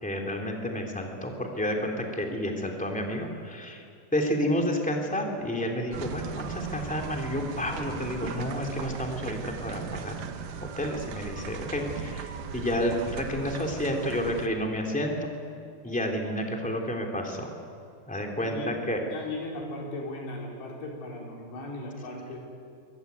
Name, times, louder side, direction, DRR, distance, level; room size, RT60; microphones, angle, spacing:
voice 1, 0.0-3.8 4.1-10.1 10.8-15.3 15.8-17.5 18.1-19.0, equal, 5° left, 1 dB, 1.8 m, -30 dB
sound 1, 5.9-14.5, right 7 dB, 65° right, 2.5 m, -38 dB
voice 2, 19.1-22.4, left 2 dB, 80° left, -1 dB, 6.6 m, -37 dB
23.5 x 22.5 x 9.4 m, 2.4 s
omnidirectional pair, 4.9 m